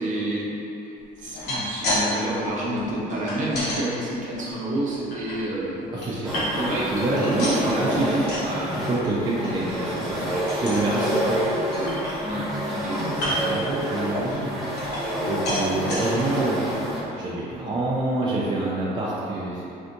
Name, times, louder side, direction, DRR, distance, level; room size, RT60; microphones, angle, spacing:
voice 1, 0.0-7.2 7.6-8.8 12.2-13.0 16.5-16.8, right 1 dB, 50° right, -5 dB, 0.8 m, -30 dB
sound 1, 1.2-2.0 2.3-3.8 4.3-5.3 5.8-6.8 7.1-8.5 8.8-9.1 9.4-9.5 9.9-10.1 10.5-10.9 11.3-11.4 11.7-12.5 13.1-13.6 14.1-15.2 15.4-16.0 16.6-16.7 17.0-17.1, left 1 dB, 80° left, 1.0 m, -30 dB
voice 2, 5.9-8.3 8.7-11.4 13.0-16.6 17.2-19.7, right 2 dB, 25° right, -7 dB, 0.4 m, -27 dB
sound 2, 6.2-17.0, right 1 dB, ahead, 0.9 m, -28 dB
3.4 x 2.6 x 2.6 m, 2.8 s
cardioid pair, 110°, 17 cm